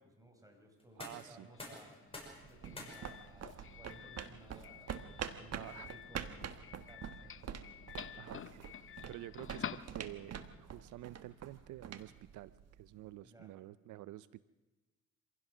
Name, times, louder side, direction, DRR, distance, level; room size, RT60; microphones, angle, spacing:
voice 1, 0.0-2.0 2.5-7.5 13.2-13.5, right 1 dB, 10° right, 3 dB, 4.9 m, -59 dB
sound 1, 0.8-12.5, left 2 dB, 20° left, 6.2 m, -57 dB
voice 2, 1.0-1.5 5.5-5.9 8.2-14.4, right 15 dB, 75° right, 17 dB, 0.5 m, -50 dB
Doorbell, 1.4-10.5, left 8 dB, 45° left, 0.8 m, -50 dB
sound 2, 2.2-13.0, right 8 dB, 55° right, 1.4 m, -46 dB
26.0 x 16.0 x 6.2 m, 1.2 s
cardioid pair, 90°, 30 cm